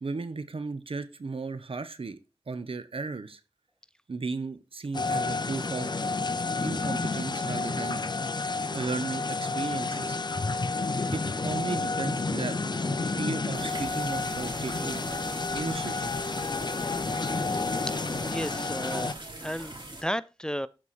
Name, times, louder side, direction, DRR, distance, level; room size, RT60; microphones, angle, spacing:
voice 1, 0.0-2.2 2.5-3.4 4.1-5.9 6.6-8.0 8.7-10.2 11.1-12.6 12.9-15.0 15.5-16.1, right 4 dB, 75° right, 0.9 m, -35 dB
Tornado Sirens, 4.9-19.1, left 3 dB, 50° left, 0.7 m, -30 dB
sound 1, 13.5-20.0, right 2 dB, 55° right, 3.2 m, -42 dB
voice 2, 18.3-19.1 19.4-20.7, equal, 10° left, 0.4 m, -33 dB
12.5 x 4.8 x 4.2 m
wide cardioid pair, 65°, 10 cm